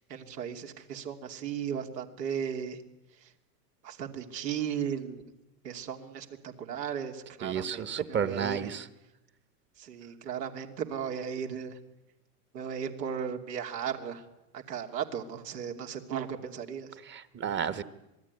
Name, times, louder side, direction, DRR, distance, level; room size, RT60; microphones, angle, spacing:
voice 1, 0.1-2.8 3.8-5.2 5.6-8.7 9.8-11.8 12.5-14.2 14.5-17.0, right 8 dB, 80° right, 3 dB, 3.2 m, -36 dB
voice 2, 7.4-8.9 17.1-17.8, right 7 dB, 20° right, 13 dB, 1.3 m, -32 dB
26.5 x 19.5 x 9.8 m, 0.94 s
hypercardioid pair, 125°, 49 cm